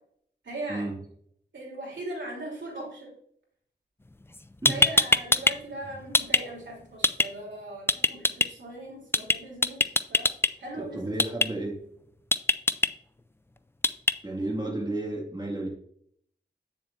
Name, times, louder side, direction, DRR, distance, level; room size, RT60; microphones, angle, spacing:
voice 1, 0.4-0.9 1.5-3.1 4.7-10.3 10.6-11.5, right 1 dB, 85° right, -3 dB, 3.2 m, -39 dB
sound 1, 4.3-4.4 4.7-5.5 5.8-6.4 7.0-7.3 7.9-8.5 9.1-9.4 9.6-10.5 11.2-11.5 12.3-12.9 13.8-14.1, left 2 dB, 15° left, 0.3 m, -21 dB
voice 2, 4.6-5.0 10.8-11.7 14.2-15.7, right 2 dB, 20° right, -2 dB, 2.0 m, -32 dB
8.7 x 7.2 x 2.6 m, 0.66 s
wide cardioid pair, 70°, 19 cm